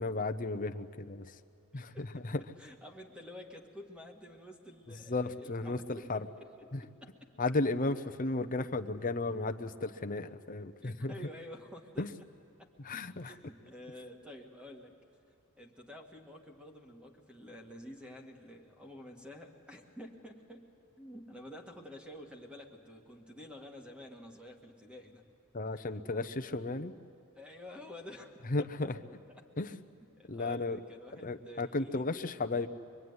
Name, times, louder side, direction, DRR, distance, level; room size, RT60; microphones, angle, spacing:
voice 1, 0.0-1.3 1.7-2.3 5.1-6.3 6.7-6.8 7.4-11.1 12.0-12.1 12.8-13.3 25.5-26.9 28.5-28.9 29.6-29.8 30.3-30.8 31.2-32.7, left 2 dB, 40° left, 7 dB, 0.8 m, -34 dB
voice 2, 1.7-7.3 8.4-8.5 10.8-12.1 12.6-12.7 13.2-14.9 15.6-20.7 21.0-25.3 25.7-25.9 27.4-29.5 30.2-32.1, left 1 dB, 5° right, 3 dB, 1.9 m, -50 dB
25.0 x 22.5 x 9.6 m, 2.5 s
head